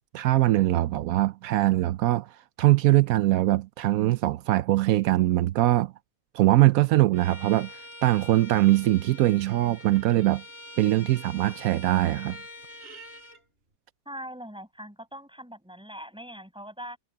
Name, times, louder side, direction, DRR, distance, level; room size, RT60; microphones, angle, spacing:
voice 1, 0.0-2.3 2.6-5.9 6.3-10.4 10.8-12.4, right 16 dB, 85° right, 1.0 m, -22 dB
Bowed string instrument, 7.1-13.4, left 2 dB, 40° right, 7.5 m, -45 dB
voice 2, 14.1-17.0, equal, 5° right, 5.4 m, -41 dB
omnidirectional pair, 1.5 m